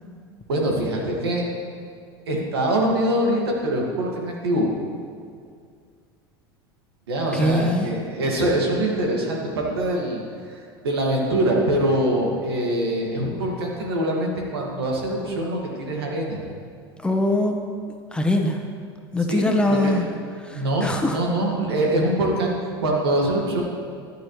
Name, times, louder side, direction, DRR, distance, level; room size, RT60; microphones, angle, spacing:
voice 1, 0.5-1.4 2.3-4.7 7.1-10.2 10.8-16.4 19.3-20.1 20.5-23.6, right 1 dB, 85° right, -1 dB, 2.1 m, -24 dB
voice 2, 7.3-7.9 17.0-17.6 18.1-18.6 19.1-20.1 20.4-21.2, left 1 dB, 10° left, 2 dB, 1.3 m, -22 dB
13.5 x 10.5 x 3.3 m, 2.2 s
hypercardioid pair, 90°, 13 cm